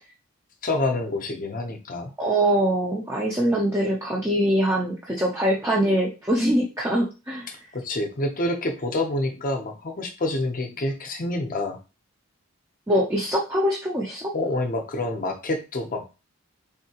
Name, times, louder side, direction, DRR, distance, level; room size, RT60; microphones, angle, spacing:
voice 1, 0.6-2.1 7.7-11.8 14.3-16.1, left 2 dB, 40° left, 4 dB, 0.7 m, -27 dB
voice 2, 2.2-7.5 12.9-14.3, right 1 dB, 10° right, -3 dB, 0.5 m, -23 dB
3.7 x 2.7 x 2.8 m, 0.30 s
head